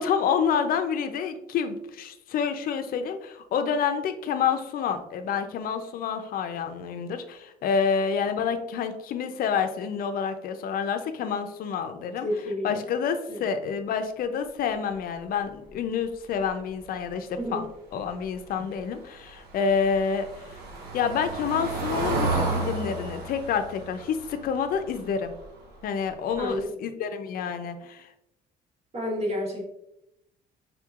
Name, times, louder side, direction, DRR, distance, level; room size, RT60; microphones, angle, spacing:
voice 1, 0.0-12.3 12.6-17.6 17.9-20.3 20.9-25.3 25.8-28.1, left 6 dB, 60° left, 8 dB, 0.5 m, -28 dB
voice 2, 12.2-12.8 13.3-13.5 17.4-17.7 26.4-26.8 28.9-29.6, equal, 40° right, -1 dB, 1.4 m, -30 dB
Car passing by / Engine, 18.8-25.7 26.1-26.3 26.6-26.7, right 3 dB, 70° right, 1.1 m, -32 dB
4.5 x 3.7 x 2.4 m, 0.85 s
cardioid pair, 110°, 17 cm